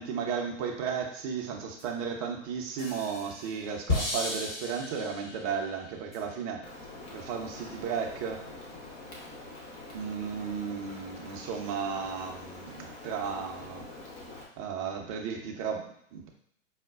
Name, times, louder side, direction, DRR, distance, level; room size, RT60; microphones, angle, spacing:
voice 1, 0.0-6.6 7.1-8.5 9.9-13.9 14.6-16.3, right 6 dB, 30° right, 2 dB, 0.5 m, -34 dB
sound 1, 1.8-1.9 2.8-5.5 6.1-6.2, left 3 dB, 40° left, 1.0 m, -34 dB
Rain, 6.6-14.5, left 2 dB, 20° left, 0.4 m, -45 dB
4.8 x 2.1 x 2.3 m, 0.71 s
figure-of-eight pair, 115°, 37 cm